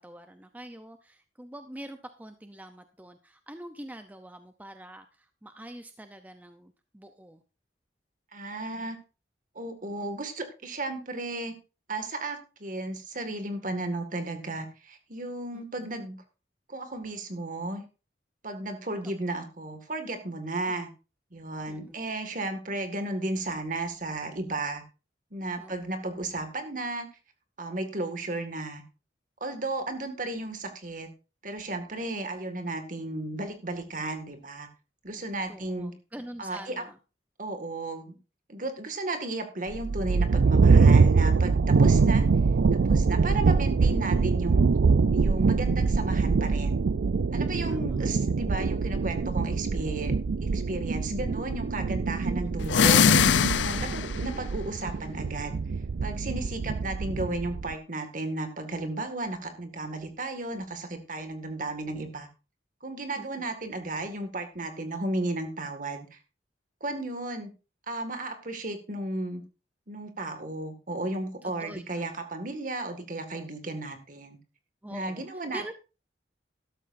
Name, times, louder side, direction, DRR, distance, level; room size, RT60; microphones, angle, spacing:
voice 1, 0.0-7.4 15.5-16.0 20.7-20.8 21.7-22.0 25.6-25.9 35.5-37.0 47.6-48.1 52.4-52.7 56.4-56.9 63.2-63.5 71.4-72.1 74.8-75.3 75.5-75.7, right 1 dB, 10° right, 8 dB, 0.6 m, -45 dB
voice 2, 8.3-9.0 9.6-11.5 11.9-16.2 16.7-17.8 18.4-20.9 21.3-24.8 25.3-27.1 27.6-28.8 29.4-31.1 31.4-34.7 35.0-35.9 36.4-36.8 37.4-38.2 38.5-42.3 42.7-44.7 45.1-46.9 47.3-50.1 50.4-55.6 56.0-62.3 62.8-66.2 66.8-67.5 67.9-69.4 69.9-74.4 74.9-75.7, right 2 dB, 45° right, 7 dB, 1.9 m, -34 dB
sound 1, 39.7-57.7, right 4 dB, 80° right, 0.5 m, -24 dB
sound 2, 52.6-54.3, left 7 dB, 85° left, 0.5 m, -21 dB
13.0 x 12.5 x 2.6 m, 0.32 s
head